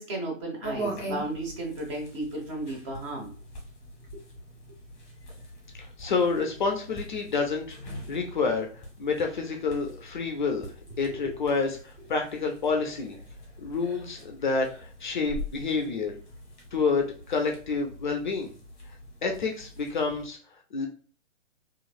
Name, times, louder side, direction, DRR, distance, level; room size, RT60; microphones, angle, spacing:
voice 1, 0.0-3.3 11.2-11.3, right 2 dB, 25° right, 0 dB, 0.7 m, -34 dB
sound 1, 0.6-20.3, equal, 20° left, 0.9 m, -43 dB
voice 2, 5.7-13.1 13.6-16.1 16.7-18.5 18.9-19.0 19.2-20.9, left 4 dB, 40° left, 3 dB, 0.4 m, -29 dB
2.9 x 2.4 x 2.3 m, 0.42 s
figure-of-eight pair, 125°, 38 cm